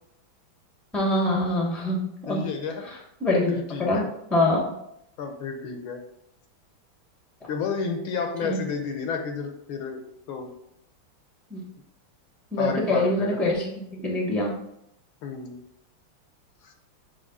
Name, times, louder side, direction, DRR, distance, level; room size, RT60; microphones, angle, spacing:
voice 1, 0.9-2.4 2.8-4.0 4.3-4.7 8.4-8.6 11.5-11.7 12.5-14.5, left 1 dB, ahead, -1 dB, 0.8 m, -25 dB
voice 2, 2.3-2.9 3.5-4.1 5.2-6.0 7.5-10.0 10.3-10.5 12.6-13.4 15.2-15.6 16.6-16.7, left 5 dB, 75° left, 5 dB, 1.7 m, -31 dB
7.4 x 3.2 x 4.0 m, 0.76 s
omnidirectional pair, 2.3 m